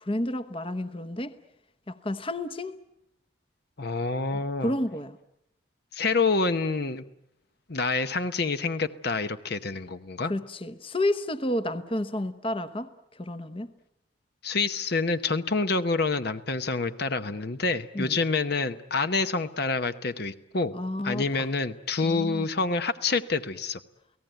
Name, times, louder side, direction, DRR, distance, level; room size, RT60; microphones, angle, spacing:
voice 1, 0.0-1.3 1.9-2.8 4.6-5.2 10.2-12.9 13.2-13.7 17.9-18.2 20.7-21.5 22.0-22.5, left 1 dB, 25° left, 0.9 m, -30 dB
voice 2, 3.8-4.7 5.9-7.0 7.7-10.3 14.4-20.7 21.0-23.8, left 3 dB, 50° left, 0.9 m, -27 dB
29.5 x 18.0 x 9.2 m
head